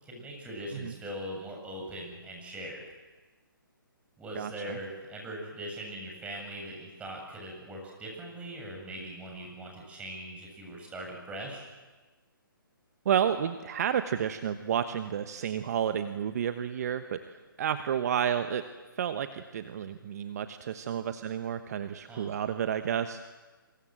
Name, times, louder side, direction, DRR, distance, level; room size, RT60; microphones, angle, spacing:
voice 1, 0.0-2.8 4.2-11.7 22.1-22.4, right 1 dB, 10° right, 1 dB, 7.2 m, -41 dB
voice 2, 4.3-4.8 13.0-18.6 19.0-23.2, right 9 dB, 45° right, 9 dB, 1.2 m, -31 dB
27.0 x 24.5 x 7.6 m, 1.3 s
figure-of-eight pair, 140°, 12 cm